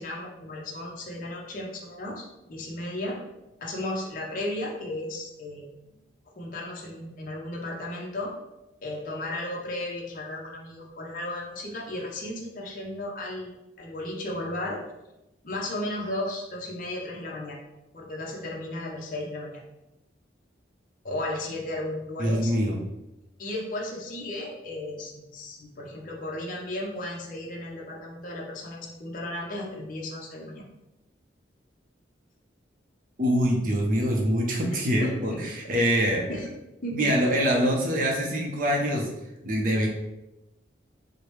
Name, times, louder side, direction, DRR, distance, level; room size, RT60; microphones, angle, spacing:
voice 1, 0.0-3.2 3.6-5.6 6.4-8.3 8.8-13.5 13.8-14.8 15.4-17.6 17.9-19.6 21.0-22.5 23.4-30.6 35.0-35.5 36.3-36.5 36.8-37.1, left 1 dB, 45° left, -2 dB, 0.6 m, -34 dB
voice 2, 22.2-22.8 33.2-36.3 36.9-39.1 39.4-39.9, equal, 45° right, 0 dB, 0.5 m, -24 dB
4.7 x 2.1 x 3.0 m, 0.94 s
head